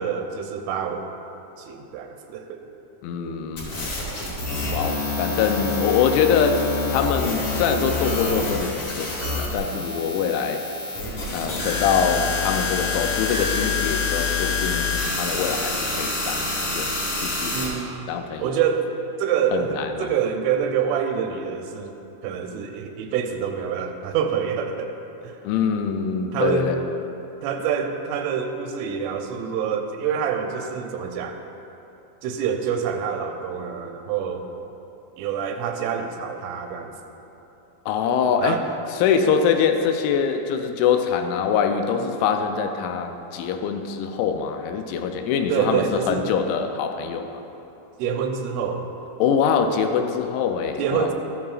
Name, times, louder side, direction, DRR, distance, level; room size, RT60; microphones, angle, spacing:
voice 1, 0.0-1.3 1.6-2.6 17.5-17.9 18.4-18.9 19.2-21.9 22.2-24.9 25.2-25.3 26.3-26.8 27.4-31.4 32.2-34.5 35.2-36.9 38.4-38.6 45.5-46.3 48.0-48.9 50.8-51.1, right 7 dB, 85° right, 4 dB, 3.1 m, -26 dB
voice 2, 3.0-3.9 4.7-10.7 11.3-16.9 17.2-17.6 18.1-18.5 19.5-20.1 25.4-26.8 37.9-38.6 38.9-47.4 49.2-51.1, left 6 dB, 85° left, 6 dB, 2.9 m, -24 dB
sound 1, 3.6-17.7, left 3 dB, 45° left, 3.1 m, -27 dB
14.0 x 10.5 x 2.4 m, 2.9 s
omnidirectional pair, 5.5 m